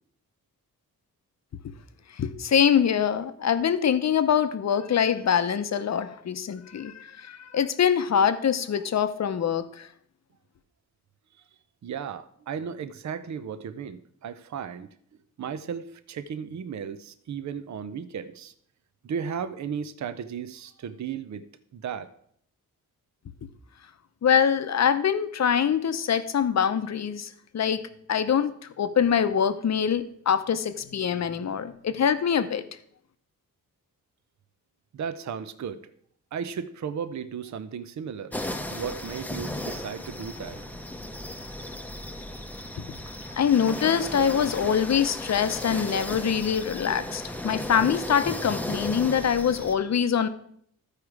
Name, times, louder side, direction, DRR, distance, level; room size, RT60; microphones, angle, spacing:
voice 1, 2.2-9.9 24.2-32.6 43.4-50.3, left 8 dB, 50° left, 11 dB, 0.7 m, -24 dB
voice 2, 11.8-14.9 15.4-18.5 19.0-21.4 21.7-22.1 34.9-35.9 36.3-38.4 38.7-40.7, right 7 dB, 50° right, 12 dB, 0.6 m, -35 dB
sound 1, 38.3-49.8, left 1 dB, 5° left, 0.7 m, -35 dB
14.0 x 4.9 x 4.7 m, 0.66 s
wide cardioid pair, 110°, 35 cm